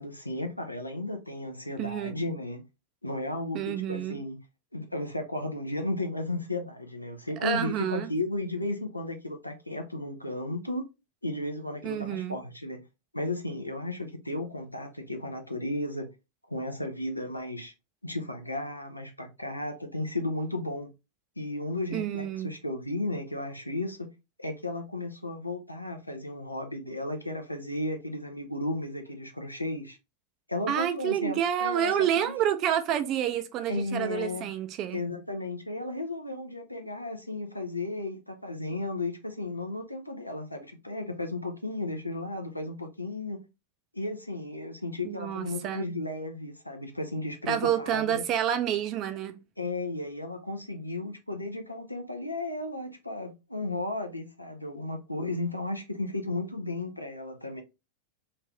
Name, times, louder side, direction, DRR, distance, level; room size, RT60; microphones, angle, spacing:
voice 1, 0.0-2.6 3.0-4.4 4.7-10.8 11.2-12.8 13.1-16.1 16.5-17.7 18.0-20.9 21.4-24.1 24.4-30.0 30.5-32.3 33.7-34.5 34.9-43.4 43.9-48.2 49.6-57.6, left 2 dB, 85° left, 0.5 m, -34 dB
voice 2, 1.8-2.2 3.5-4.2 7.4-8.1 11.8-12.3 21.9-22.5 30.7-35.0 45.0-45.9 47.5-49.4, right 10 dB, 35° right, 0.4 m, -29 dB
3.2 x 2.6 x 3.2 m
figure-of-eight pair, 90°, 0 cm